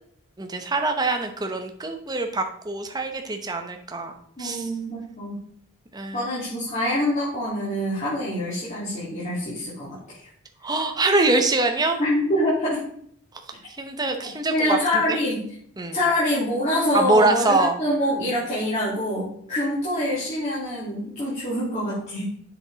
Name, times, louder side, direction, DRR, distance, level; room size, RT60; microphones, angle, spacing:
voice 1, 0.4-4.7 5.9-6.3 10.6-12.0 13.8-15.2 15.8-16.0 16.9-17.8, right 2 dB, 20° right, 5 dB, 0.8 m, -24 dB
voice 2, 4.4-5.4 6.1-10.3 12.0-12.8 14.5-15.4 15.9-22.2, left 1 dB, 30° left, -10 dB, 2.6 m, -25 dB
7.5 x 6.0 x 4.0 m, 0.63 s
head